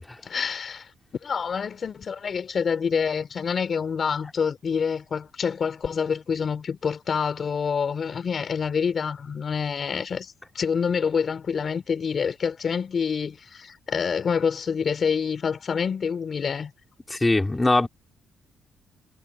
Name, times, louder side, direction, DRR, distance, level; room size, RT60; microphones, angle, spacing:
voice 1, 0.2-0.9 1.2-16.7, left 6 dB, 45° left, 4.3 m, -27 dB
voice 2, 17.1-17.9, left 2 dB, 15° left, 5.7 m, -21 dB
cardioid pair, 90°, 0 cm